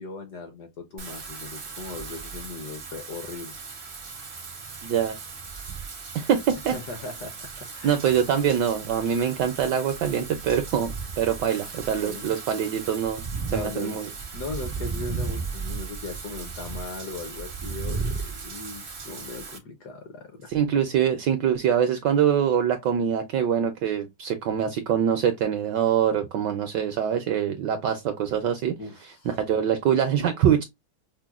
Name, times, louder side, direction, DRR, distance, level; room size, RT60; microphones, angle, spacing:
voice 1, 0.0-3.5 3.9-4.2 5.6-5.7 6.7-8.0 8.8-9.0 12.0-12.3 13.5-14.0 14.3-20.5 28.8-29.4, left 3 dB, 65° left, 1.0 m, -38 dB
Wind / Rain, 1.0-19.6, right 4 dB, 60° right, 0.5 m, -36 dB
voice 2, 4.8-5.2 6.1-6.8 7.8-13.2 13.5-14.1 20.5-28.8 29.2-30.6, right 9 dB, 75° right, 1.0 m, -24 dB
5.8 x 2.1 x 2.3 m
omnidirectional pair, 2.3 m